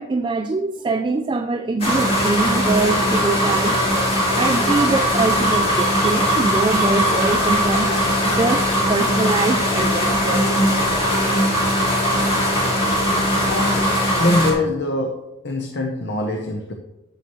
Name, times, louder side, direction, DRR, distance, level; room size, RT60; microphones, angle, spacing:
voice 1, 0.0-10.8, right 3 dB, 25° right, 7 dB, 0.3 m, -24 dB
sound 1, 1.8-14.5, equal, 30° left, 2.5 m, -19 dB
voice 2, 13.4-13.9 14.2-15.2 15.4-16.7, left 1 dB, 55° left, 3 dB, 0.8 m, -23 dB
11.5 x 7.9 x 3.1 m, 0.96 s
head